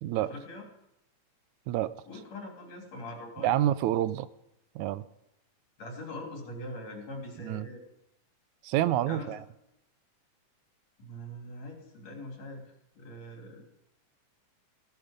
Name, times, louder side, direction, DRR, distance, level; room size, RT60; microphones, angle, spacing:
voice 1, 0.1-0.7 2.1-3.5 5.8-7.8 9.0-9.4 11.0-13.7, left 1 dB, 65° left, 1 dB, 4.5 m, -42 dB
voice 2, 3.4-4.3 4.8-5.1 7.4-7.7 8.6-9.4, right 13 dB, 85° right, 15 dB, 2.1 m, -28 dB
16.5 x 12.0 x 5.2 m, 0.86 s
omnidirectional pair, 3.3 m